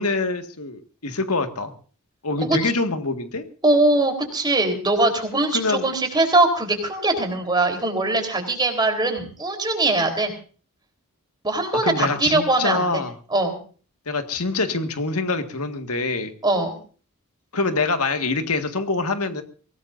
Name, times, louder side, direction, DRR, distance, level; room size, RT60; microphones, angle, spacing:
voice 1, 0.0-1.7 2.2-3.5 5.5-5.9 11.8-13.1 14.1-16.3 17.5-19.4, left 3 dB, 90° left, 7 dB, 1.9 m, -25 dB
voice 2, 3.6-10.3 11.4-13.0 13.3-13.6 16.4-16.8, right 2 dB, 20° right, 5 dB, 3.9 m, -21 dB
24.0 x 18.0 x 2.7 m, 0.40 s
head